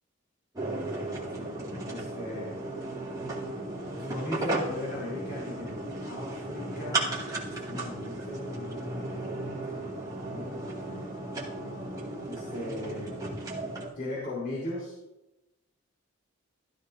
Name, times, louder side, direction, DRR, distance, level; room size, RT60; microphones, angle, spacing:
sound 1, 0.6-13.9, right 2 dB, 20° right, 2.3 m, -35 dB
voice 1, 1.3-2.6 3.9-10.0 10.3-11.1 12.2-13.1 14.0-15.0, left 1 dB, 50° left, -6 dB, 3.8 m, -38 dB
15.5 x 12.5 x 2.7 m, 0.95 s
head